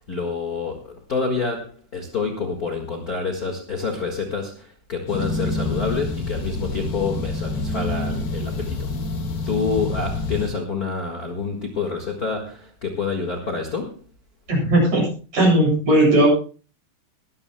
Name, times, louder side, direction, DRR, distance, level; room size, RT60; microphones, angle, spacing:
voice 1, 0.1-8.9 9.5-14.0, left 4 dB, 35° left, 2 dB, 1.6 m, -27 dB
sound 1, 5.1-10.5, left 2 dB, 60° left, 3.2 m, -27 dB
voice 2, 14.5-15.0 15.3-16.3, right 1 dB, 50° right, -2 dB, 9.3 m, -17 dB
21.5 x 14.0 x 2.2 m, 0.37 s
omnidirectional pair, 3.7 m